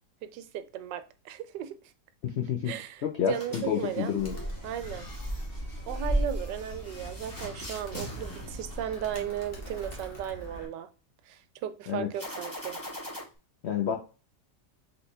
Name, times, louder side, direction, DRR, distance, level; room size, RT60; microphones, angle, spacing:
voice 1, 0.2-1.8 2.6-4.1 4.6-5.1 5.9-10.9 11.3-12.8, right 10 dB, 85° right, 1.2 m, -36 dB
voice 2, 2.2-2.7 3.0-4.3 11.9-12.1 13.6-14.0, left 8 dB, 75° left, 0.6 m, -29 dB
sound 1, 3.3-9.5 12.1-13.2, equal, 15° left, 1.1 m, -43 dB
Animal, 4.2-10.7, right 1 dB, 35° left, 1.3 m, -36 dB
4.0 x 4.0 x 3.2 m
omnidirectional pair, 1.8 m